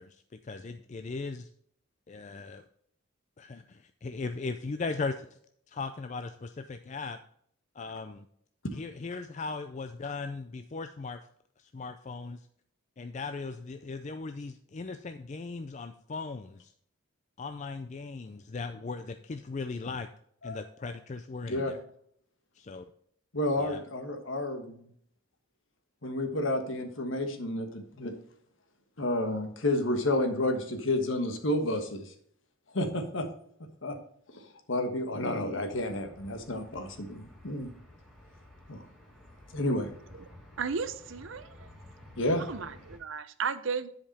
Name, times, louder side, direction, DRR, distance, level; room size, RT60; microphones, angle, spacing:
voice 1, 0.0-1.5 2.1-2.6 3.4-5.3 5.7-7.2 7.7-8.3 8.7-11.2 11.6-12.5 13.0-16.7 17.4-20.1 20.4-21.8 22.5-22.9 23.6-23.8, left 4 dB, 35° left, 8 dB, 0.4 m, -38 dB
voice 2, 23.3-24.8 26.0-28.1 29.0-32.1 32.7-33.3 33.8-34.0 34.3-34.4 34.7-37.7 38.7-38.8 39.5-39.9 42.2-42.4, left 1 dB, 70° left, 6 dB, 1.4 m, -30 dB
sound 1, 35.7-43.0, left 1 dB, 5° left, 2.4 m, -53 dB
voice 3, 40.6-41.7 42.4-43.9, right 5 dB, 70° right, 13 dB, 0.6 m, -34 dB
10.5 x 5.1 x 4.2 m, 0.65 s
head